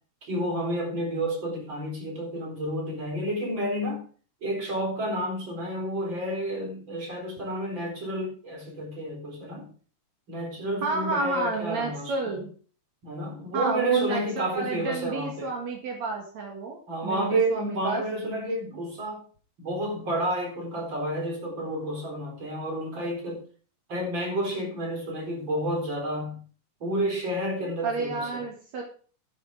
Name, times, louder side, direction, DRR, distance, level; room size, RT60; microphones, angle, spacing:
voice 1, 0.2-4.0 4.4-9.7 10.3-12.3 13.0-15.5 16.9-19.2 19.6-23.4 23.9-26.4 26.8-28.4, right 1 dB, 40° right, 0 dB, 4.8 m, -30 dB
voice 2, 10.8-12.5 13.5-18.0 27.8-28.8, right 4 dB, 65° right, 1 dB, 3.2 m, -30 dB
12.0 x 7.6 x 4.9 m, 0.41 s
omnidirectional pair, 3.4 m